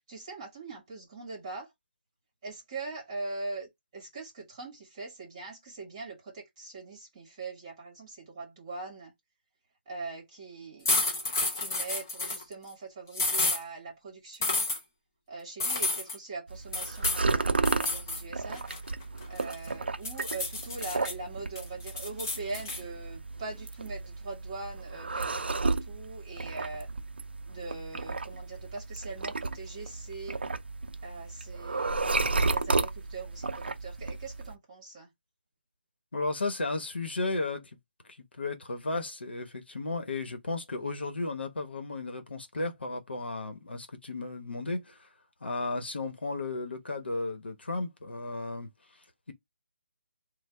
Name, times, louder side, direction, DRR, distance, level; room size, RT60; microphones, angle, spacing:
voice 1, 0.1-1.7 2.4-9.1 9.8-10.9 11.5-14.7 15.3-18.6 19.3-26.9 27.5-30.4 31.0-35.1, right 3 dB, 10° right, 1.1 m, -42 dB
sound 1, 10.8-12.4 13.1-13.6 14.4-14.8 15.6-16.2 16.7-17.2 17.6-18.2 18.5-19.7 20.0-21.1 21.5-22.8, left 2 dB, 15° left, 0.5 m, -30 dB
sound 2, 16.5-34.5, right 3 dB, 65° right, 0.5 m, -33 dB
voice 2, 36.1-37.7 38.4-45.1 45.4-48.7, left 3 dB, 70° left, 1.0 m, -34 dB
3.3 x 2.1 x 3.3 m
hypercardioid pair, 180°, 6 cm